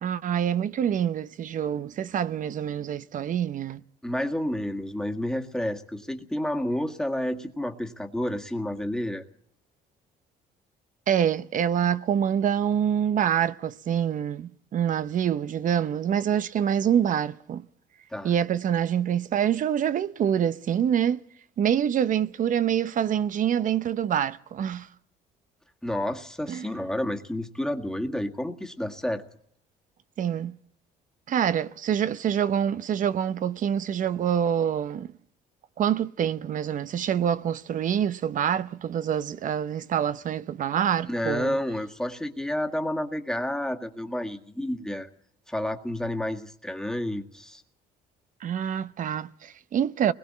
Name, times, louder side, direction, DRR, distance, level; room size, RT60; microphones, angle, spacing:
voice 1, 0.0-3.8 11.1-17.6 18.2-21.2 21.6-24.9 26.5-26.7 30.2-30.6 31.3-35.1 35.8-41.6 48.4-50.1, right 9 dB, 50° right, 0.8 m, -26 dB
voice 2, 4.0-9.2 18.1-18.3 25.8-29.2 41.1-45.1 45.5-47.6, left 1 dB, 5° left, 1.8 m, -30 dB
30.0 x 21.0 x 4.2 m
cardioid pair, 110°, 17 cm